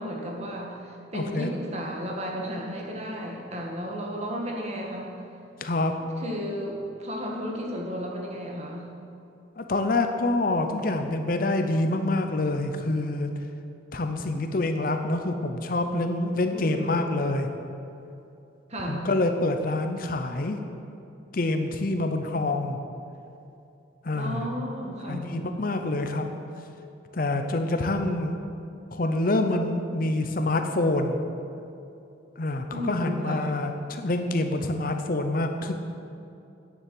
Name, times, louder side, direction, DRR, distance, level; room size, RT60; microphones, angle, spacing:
voice 1, 0.0-5.1 6.2-8.9 16.5-17.0 18.7-19.1 24.1-25.3 32.7-33.5, equal, 35° right, -1 dB, 1.7 m, -33 dB
voice 2, 1.1-1.5 5.6-5.9 9.6-13.3 13.9-17.5 18.9-20.6 21.3-22.8 24.0-24.5 25.1-26.3 27.1-28.4 28.9-31.2 32.4-35.7, left 2 dB, 45° left, 6 dB, 0.7 m, -26 dB
9.9 x 7.3 x 7.7 m, 2.7 s
head